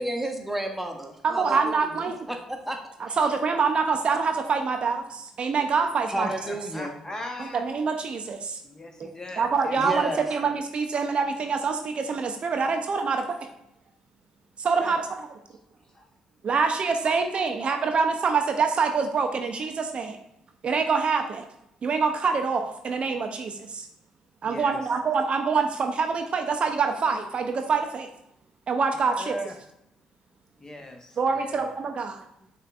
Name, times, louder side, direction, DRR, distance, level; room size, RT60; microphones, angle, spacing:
voice 1, 0.0-1.9 2.3-2.8 3.1-3.2 6.1-6.9 9.8-10.3, right 1 dB, 5° right, 3 dB, 0.8 m, -31 dB
voice 2, 1.2-2.2 3.0-6.3 7.4-8.6 9.0-9.1 9.4-13.2 14.6-15.2 16.4-20.2 20.6-21.4 21.8-23.9 24.4-28.1 28.7-29.3 31.2-32.2, right 5 dB, 50° right, 5 dB, 0.4 m, -25 dB
voice 3, 6.2-7.6 8.6-9.8 10.1-10.2 14.8-15.0 15.9-16.1 24.4-24.8 29.1-29.5 30.6-31.7, left 1 dB, 25° left, 3 dB, 0.8 m, -38 dB
6.3 x 2.4 x 2.4 m, 0.79 s
hypercardioid pair, 50°, 2 cm